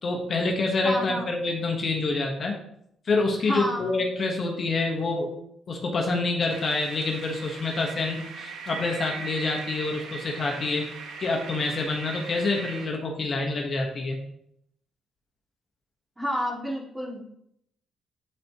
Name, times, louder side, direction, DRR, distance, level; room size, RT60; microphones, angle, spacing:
voice 1, 0.0-2.5 3.1-5.3 5.7-10.8 11.2-14.2, left 3 dB, 45° left, 1 dB, 1.3 m, -27 dB
voice 2, 0.8-1.3 3.5-4.0 16.2-17.2, equal, 10° right, -2 dB, 2.2 m, -30 dB
sound 1, 6.5-12.9, right 5 dB, 85° right, 1.1 m, -39 dB
11.5 x 4.3 x 3.0 m, 0.74 s
cardioid pair, 90°, 0 cm